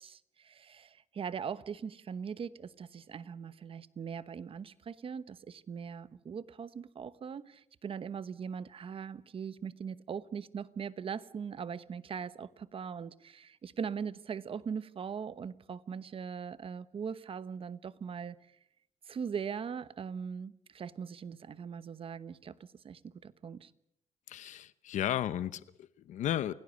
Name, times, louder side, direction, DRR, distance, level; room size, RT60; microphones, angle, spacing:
voice 1, 0.0-18.4 19.1-22.6 22.8-23.7, right 6 dB, 50° right, 1.1 m, -40 dB
voice 2, 24.3-26.5, left 11 dB, 85° left, 0.9 m, -34 dB
28.0 x 17.5 x 8.5 m
cardioid pair, 110°, 12 cm